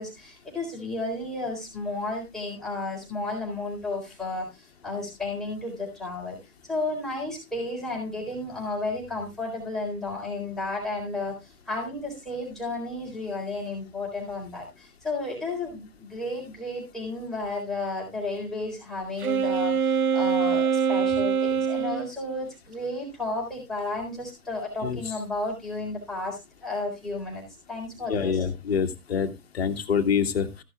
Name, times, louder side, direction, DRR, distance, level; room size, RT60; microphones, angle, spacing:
voice 1, 0.0-6.4 6.7-28.4, left 2 dB, ahead, -4 dB, 4.1 m, -33 dB
Wind instrument woodwind instrument, 19.2-22.1, right 6 dB, 75° right, 0.6 m, -24 dB
voice 2, 28.1-30.6, left 6 dB, 45° left, 7 dB, 1.9 m, -26 dB
14.5 x 11.0 x 2.4 m, 0.25 s
figure-of-eight pair, 130°, 44 cm